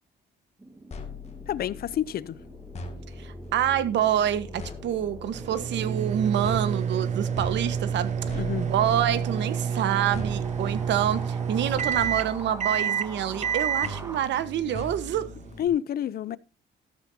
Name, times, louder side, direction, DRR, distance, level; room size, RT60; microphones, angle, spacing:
sound 1, 0.6-14.2, right 2 dB, 15° right, 1.8 m, -44 dB
sound 2, 0.9-15.7, left 2 dB, 40° left, 2.3 m, -41 dB
voice 1, 1.5-2.4 8.3-8.7 15.6-16.4, left 10 dB, 60° left, 0.6 m, -28 dB
voice 2, 3.2-15.3, right 10 dB, 85° right, 1.3 m, -27 dB
sound 3, 5.3-15.7, right 8 dB, 40° right, 0.6 m, -29 dB
13.5 x 13.5 x 2.8 m
cardioid pair, 140°, 18 cm